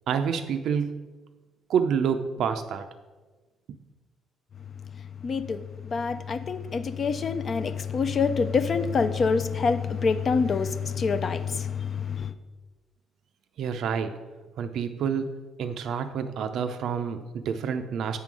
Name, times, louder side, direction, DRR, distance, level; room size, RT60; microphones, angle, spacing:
voice 1, 0.1-1.0 1.7-2.9 13.6-14.1 14.6-18.2, right 7 dB, 70° right, 0.4 m, -28 dB
voice 2, 5.2-12.3, left 5 dB, 40° left, 0.4 m, -26 dB
8.2 x 3.8 x 6.1 m
cardioid pair, 115°, 0 cm